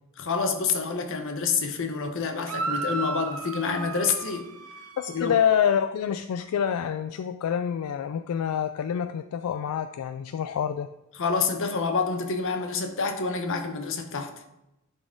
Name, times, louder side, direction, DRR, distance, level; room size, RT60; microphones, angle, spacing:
voice 1, 0.2-4.5 5.1-5.3 11.2-14.4, left 5 dB, 65° left, 5 dB, 0.9 m, -28 dB
sound 1, 2.4-5.7, right 3 dB, 85° right, 0.7 m, -34 dB
voice 2, 5.0-10.9, left 8 dB, 85° left, 9 dB, 0.3 m, -27 dB
11.0 x 4.1 x 3.7 m, 0.92 s
head